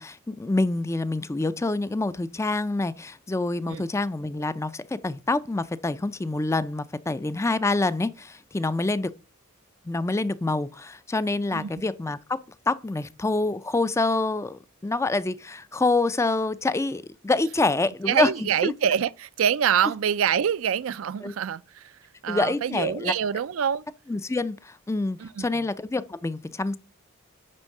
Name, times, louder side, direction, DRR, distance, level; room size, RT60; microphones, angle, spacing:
voice 1, 0.0-9.1 9.8-12.4 12.7-18.3 18.6-18.7 21.2-21.3 22.3-23.1 24.1-26.8, left 2 dB, 15° left, 0.4 m, -26 dB
voice 2, 18.1-21.9 22.2-23.8 25.2-25.5, right 8 dB, 70° right, 0.4 m, -25 dB
9.8 x 3.6 x 6.5 m
head